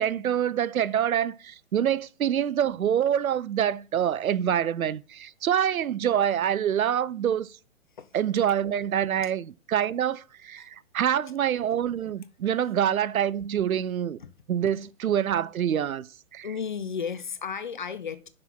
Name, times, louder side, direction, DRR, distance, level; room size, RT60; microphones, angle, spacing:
voice 1, 0.0-7.5 8.1-14.2 14.5-16.1 16.3-16.5, right 9 dB, 80° right, 0.5 m, -26 dB
voice 2, 16.4-18.3, left 6 dB, 40° left, 0.4 m, -34 dB
6.0 x 4.3 x 6.1 m
figure-of-eight pair, 130°, 42 cm